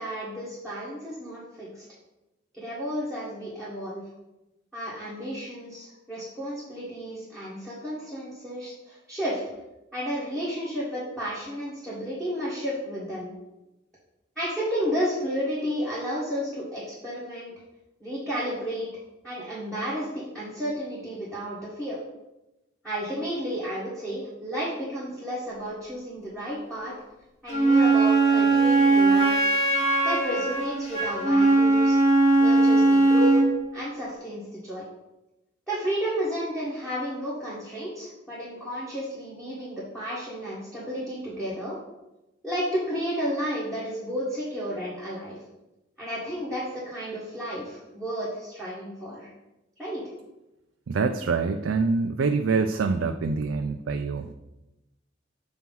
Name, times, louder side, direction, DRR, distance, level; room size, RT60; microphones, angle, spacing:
voice 1, 0.0-1.8 2.6-4.0 4.7-9.4 9.9-13.3 14.3-17.5 18.0-18.9 19.2-22.0 22.8-26.9 27.4-29.6 30.0-32.0 32.4-33.4 33.7-34.8 35.7-41.8 42.4-45.4 46.0-49.3 49.8-50.0, equal, 5° left, -10 dB, 1.6 m, -32 dB
Wind instrument woodwind instrument, 27.5-33.5, right 3 dB, 40° left, 1.6 m, -20 dB
voice 2, 50.9-54.3, right 4 dB, 90° right, 6 dB, 0.4 m, -25 dB
7.1 x 3.0 x 5.4 m, 0.97 s
head